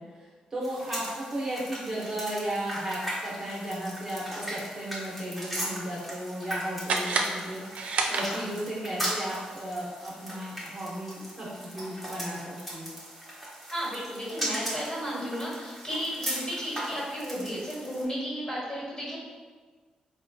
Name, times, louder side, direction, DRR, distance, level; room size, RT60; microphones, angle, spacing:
voice 1, 0.0-12.9, right 1 dB, 30° right, -6 dB, 0.8 m, -35 dB
sound 1, 0.6-18.0, right 1 dB, 5° left, 0.9 m, -38 dB
sound 2, 6.8-8.8, right 4 dB, 65° right, 0.3 m, -30 dB
voice 2, 13.7-19.2, equal, 30° left, -6 dB, 1.4 m, -33 dB
4.0 x 2.2 x 2.7 m, 1.4 s
cardioid pair, 105°, 2 cm